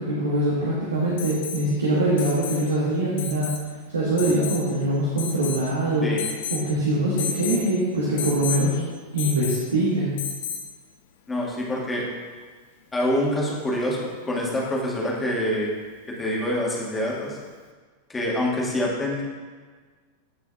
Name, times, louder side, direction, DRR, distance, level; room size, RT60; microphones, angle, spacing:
voice 1, 0.0-3.5 3.9-6.1 6.5-8.8 9.1-10.1, right 1 dB, 75° right, -6 dB, 1.7 m, -23 dB
Alarm, 1.2-1.6 2.2-2.7 3.2-3.6 4.2-4.7 5.2-5.7 6.2-6.7 7.2-7.6 8.2-8.7 9.2-9.7 10.2-10.7 12.4-12.5, left 7 dB, 55° left, 0.7 m, -32 dB
voice 2, 11.3-12.0 12.9-15.7 16.2-17.4 18.1-19.3, left 1 dB, 15° left, -4 dB, 2.1 m, -26 dB
15.5 x 5.7 x 2.6 m, 1.5 s
figure-of-eight pair, 90°, 0 cm